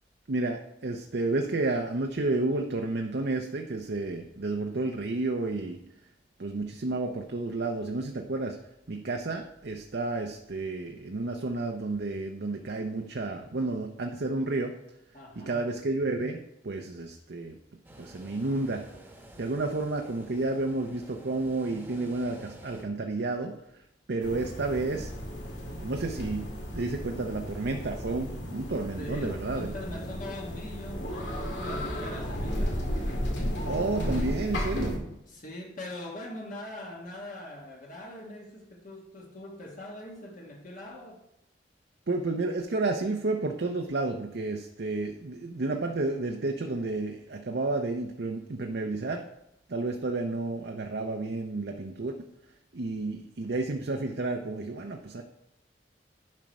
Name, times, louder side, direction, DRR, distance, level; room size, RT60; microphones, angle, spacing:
voice 1, 0.3-5.8 6.4-8.6 8.9-14.7 15.4-17.6 18.0-18.8 19.4-23.5 24.1-25.1 25.5-29.8 33.6-35.0 42.1-49.2 49.7-52.3 52.7-55.2, right 2 dB, 65° right, 0.7 m, -31 dB
voice 2, 15.1-15.7 29.0-32.8 35.3-41.2, left 1 dB, 50° left, 1.3 m, -42 dB
sound 1, 17.8-22.8, right 1 dB, 10° right, 1.2 m, -50 dB
sound 2, 24.2-35.0, equal, 85° left, 2.1 m, -34 dB
11.0 x 4.5 x 5.2 m
head